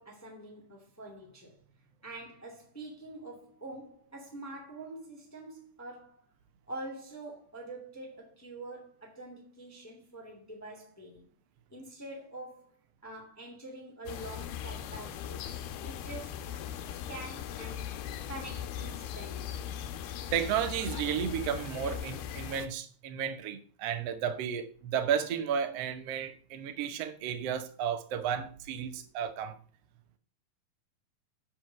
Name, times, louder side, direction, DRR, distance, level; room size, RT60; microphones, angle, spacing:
voice 1, 0.0-1.6 2.0-6.2 6.7-11.3 11.7-12.7 13.0-15.6 15.8-16.4 17.1-19.6 28.9-29.0, right 2 dB, 5° left, 1.9 m, -45 dB
sound 1, 14.1-22.7, left 9 dB, 90° left, 2.7 m, -39 dB
voice 2, 20.3-29.6, right 8 dB, 65° right, 1.6 m, -33 dB
7.9 x 5.3 x 7.6 m
omnidirectional pair, 4.2 m